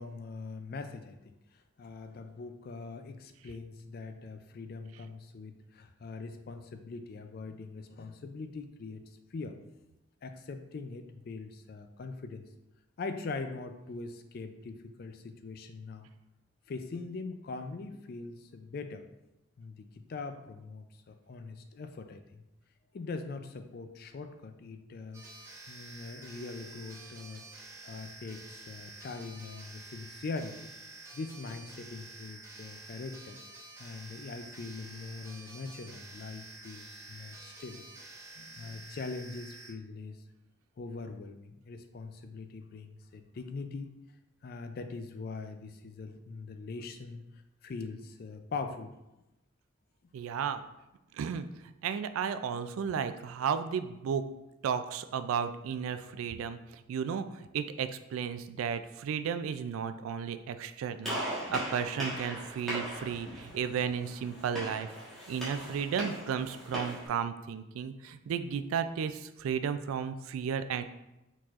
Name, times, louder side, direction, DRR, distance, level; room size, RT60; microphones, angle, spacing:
voice 1, 0.0-9.0 9.3-9.6 10.2-12.5 13.0-16.1 16.7-19.1 19.6-22.4 22.9-25.2 25.7-27.4 27.8-30.6 30.9-33.4 33.8-37.9 38.4-40.2 40.8-43.9 44.4-47.2 47.6-48.9 66.0-66.2, left 3 dB, 50° left, 7 dB, 0.3 m, -42 dB
sound 1, 25.1-39.7, right 2 dB, 15° right, 0.5 m, -49 dB
voice 2, 50.1-50.6 51.1-51.4 51.8-54.2 54.6-61.2 61.5-64.9 65.3-70.8, right 7 dB, 90° right, 11 dB, 0.3 m, -34 dB
Gunshot gunfire, 61.0-67.1, equal, ahead, 1.3 m, -39 dB
4.5 x 4.1 x 2.4 m, 0.95 s
head